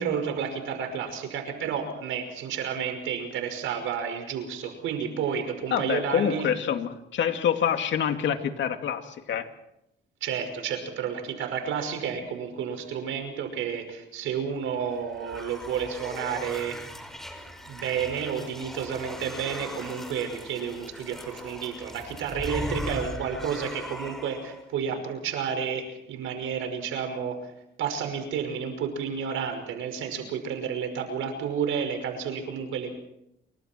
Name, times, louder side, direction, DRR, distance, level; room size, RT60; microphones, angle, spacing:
voice 1, 0.0-6.5 10.2-16.8 17.7-27.5 27.8-32.9, right 7 dB, 85° right, 6 dB, 5.6 m, -31 dB
voice 2, 5.7-9.5, left 8 dB, 70° left, 6 dB, 2.5 m, -26 dB
sound 1, 14.6-24.6, equal, ahead, 5.2 m, -39 dB
29.0 x 24.5 x 4.6 m, 0.81 s
cardioid pair, 90°, 20 cm